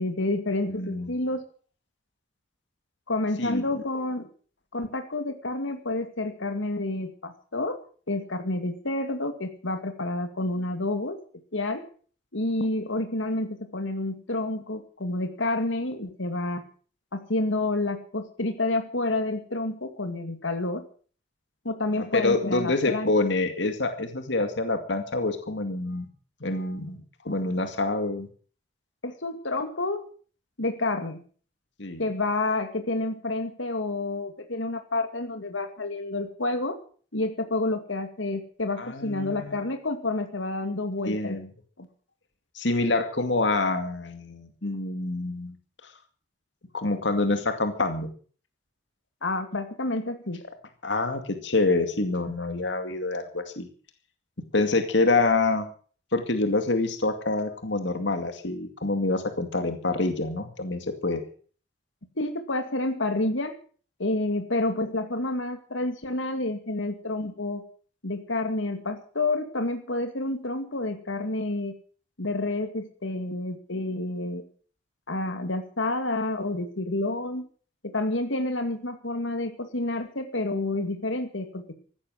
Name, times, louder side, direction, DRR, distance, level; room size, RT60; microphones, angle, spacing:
voice 1, 0.0-1.4 3.1-4.3 4.7-7.8 8.1-11.2 11.5-11.9 12.3-16.6 17.1-20.8 21.6-23.1 29.0-30.1 30.6-31.2 32.0-36.8 37.1-41.4 41.8-41.9 49.2-50.4 62.2-63.6 64.0-67.6 68.0-71.7 72.2-74.4 75.1-77.5 77.8-81.7, left 2 dB, 85° left, 7 dB, 2.3 m, -29 dB
voice 2, 0.7-1.1 3.4-3.6 21.9-26.1 26.4-27.0 27.2-28.3 31.8-32.0 38.8-39.6 41.0-41.5 42.5-45.6 45.8-45.9 46.7-48.1 50.8-53.7 54.5-55.7 56.1-61.2, left 2 dB, 70° left, 7 dB, 2.3 m, -26 dB
15.0 x 13.0 x 6.5 m, 0.43 s
head